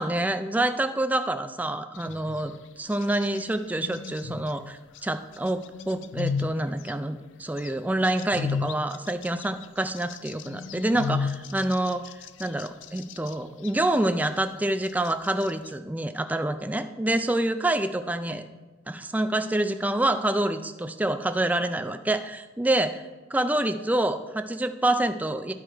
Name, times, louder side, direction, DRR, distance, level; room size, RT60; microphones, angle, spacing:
voice 1, 0.0-12.0 12.4-18.4 18.9-23.0 23.3-25.5, right 1 dB, 10° right, 9 dB, 0.4 m, -27 dB
sound 1, 2.0-2.6 2.9-3.4 3.8-5.0 5.5-6.9 7.6-13.3 13.6-14.3 14.8-15.7, left 5 dB, 80° left, 0.4 m, -34 dB
11.0 x 4.8 x 4.4 m, 1.3 s
head